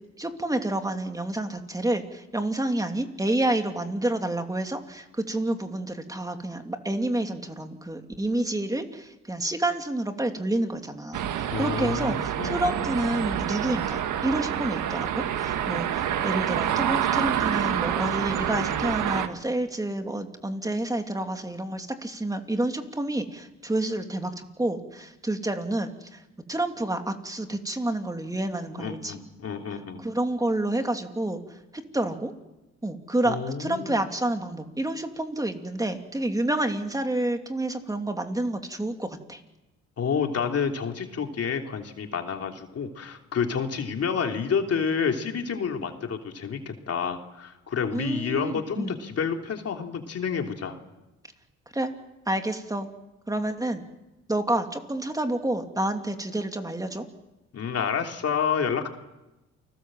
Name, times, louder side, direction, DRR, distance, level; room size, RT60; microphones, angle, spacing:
voice 1, 0.2-26.2 26.5-29.1 30.0-31.4 31.9-32.3 32.8-39.4 47.9-49.0 51.7-51.9 52.3-52.9 53.3-53.8 54.3-57.0, right 1 dB, 10° right, 5 dB, 2.8 m, -29 dB
sound 1, 11.1-19.3, right 10 dB, 80° right, 1.7 m, -27 dB
voice 2, 11.5-12.8 28.7-30.0 33.2-34.0 40.0-50.8 57.5-58.9, left 6 dB, 55° left, 3 dB, 3.1 m, -29 dB
29.0 x 20.0 x 7.7 m, 1.0 s
cardioid pair, 90°, 30 cm